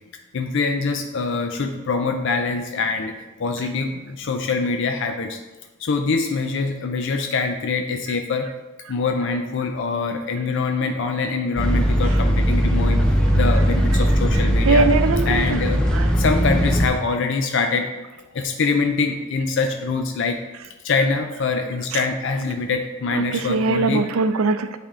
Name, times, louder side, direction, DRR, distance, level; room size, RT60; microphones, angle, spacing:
voice 1, 0.3-5.4 5.8-8.5 8.9-13.0 13.3-14.9 15.3-15.8 16.1-17.9 18.3-20.4 20.8-24.0, left 4 dB, 60° left, 5 dB, 0.5 m, -24 dB
sound 1, 11.6-16.9, equal, 5° left, 0.7 m, -19 dB
voice 2, 14.7-15.4 15.9-16.1 23.1-24.8, right 3 dB, 85° right, 10 dB, 0.5 m, -21 dB
8.7 x 3.4 x 3.7 m, 1.1 s
head